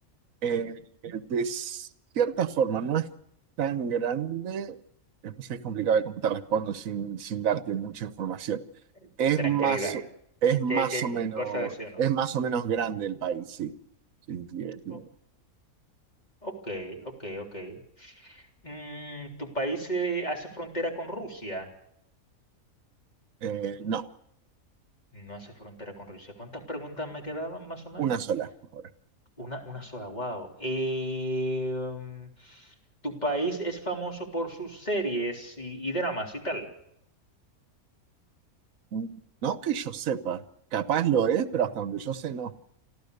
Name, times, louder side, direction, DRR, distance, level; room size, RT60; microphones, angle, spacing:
voice 1, 0.4-1.9 2.1-3.1 3.6-4.8 5.2-8.6 9.2-10.0 10.4-11.7 12.0-13.7 14.3-15.1 23.4-24.0 28.0-28.9 38.9-39.2 39.4-40.4 40.7-42.5, right 8 dB, 70° right, 14 dB, 1.4 m, -28 dB
voice 2, 9.4-9.9 10.7-11.1 11.4-12.0 14.9-15.0 16.4-21.7 25.1-28.1 29.4-32.7 33.0-36.7, right 1 dB, 30° left, 1 dB, 3.8 m, -33 dB
28.5 x 13.5 x 6.7 m, 0.75 s
omnidirectional pair, 1.5 m